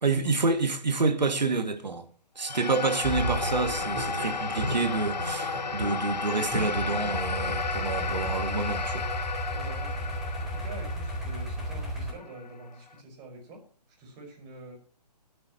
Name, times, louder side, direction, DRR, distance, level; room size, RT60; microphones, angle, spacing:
voice 1, 0.0-2.1 2.4-9.1, right 3 dB, 85° right, 2.6 m, -28 dB
sound 1, 2.4-12.9, left 5 dB, 80° left, 1.4 m, -34 dB
sound 2, 3.0-8.4, right 1 dB, 45° right, 5.9 m, -35 dB
sound 3, 7.1-12.1, right 1 dB, ahead, 4.1 m, -34 dB
voice 2, 9.5-13.6 14.0-14.8, right 2 dB, 20° right, 5.6 m, -46 dB
24.0 x 9.5 x 3.1 m
hypercardioid pair, 150°, 21 cm